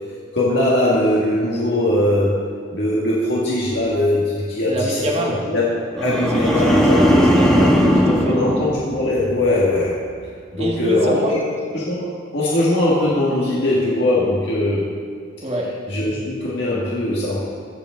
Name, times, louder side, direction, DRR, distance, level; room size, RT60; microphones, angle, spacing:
voice 1, 0.3-2.4 2.7-5.7 6.0-7.3 8.2-10.0 10.5-14.9 15.9-17.4, left 1 dB, 60° left, -6 dB, 2.0 m, -20 dB
voice 2, 4.6-5.4 6.0-8.3 10.5-11.4 15.4-15.8 16.1-16.2, equal, 30° right, -2 dB, 1.6 m, -26 dB
sound 1, 6.0-9.4 9.8-10.2, equal, 5° left, 1.3 m, -18 dB
23.0 x 8.5 x 3.9 m, 2.2 s
head